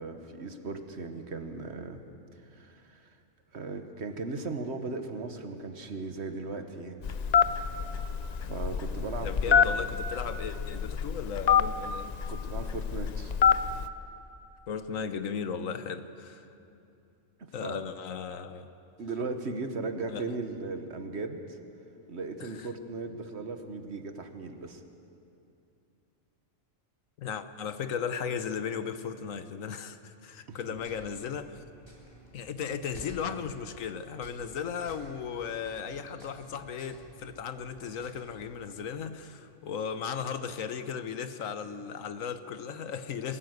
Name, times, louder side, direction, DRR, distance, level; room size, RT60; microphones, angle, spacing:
voice 1, 0.0-2.0 2.5-3.1 3.5-7.0 8.4-9.9 12.3-13.3 17.4-17.8 19.0-21.6 22.1-24.8 30.5-30.7, right 3 dB, 55° right, 1.5 m, -37 dB
Telephone, 7.0-13.9, left 7 dB, 45° left, 0.5 m, -27 dB
voice 2, 9.2-12.1 14.7-16.5 17.5-18.7 20.1-20.2 22.4-22.7 27.2-31.6 32.3-43.4, left 7 dB, 90° left, 1.3 m, -36 dB
sound 1, 30.8-38.8, right 1 dB, 20° left, 3.6 m, -52 dB
22.5 x 15.5 x 8.0 m
omnidirectional pair, 1.3 m